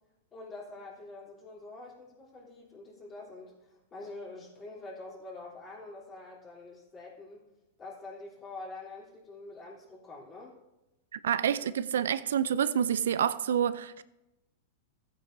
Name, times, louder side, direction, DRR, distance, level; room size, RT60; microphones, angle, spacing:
voice 1, 0.3-7.5 7.8-10.5, left 2 dB, 25° left, 3.4 m, -46 dB
voice 2, 11.1-14.0, right 9 dB, 80° right, 0.4 m, -28 dB
15.0 x 9.2 x 2.7 m
hypercardioid pair, 125°, 0 cm